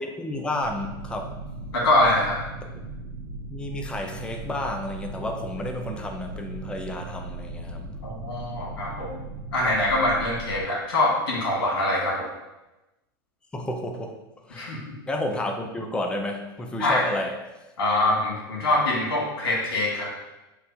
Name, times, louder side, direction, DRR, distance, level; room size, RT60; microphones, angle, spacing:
voice 1, 0.0-1.3 3.5-7.9 13.5-14.2 14.5-14.8 15.1-17.3, left 1 dB, 10° left, 3 dB, 0.4 m, -31 dB
sound 1, 0.6-10.6, right 2 dB, 70° right, 0.6 m, -38 dB
voice 2, 1.7-2.4 8.0-9.2 9.5-12.3 14.5-14.8 16.8-17.0 17.8-20.1, left 1 dB, 85° left, -3 dB, 1.5 m, -24 dB
3.3 x 2.4 x 4.4 m, 1.0 s
supercardioid pair, 125°, 12 cm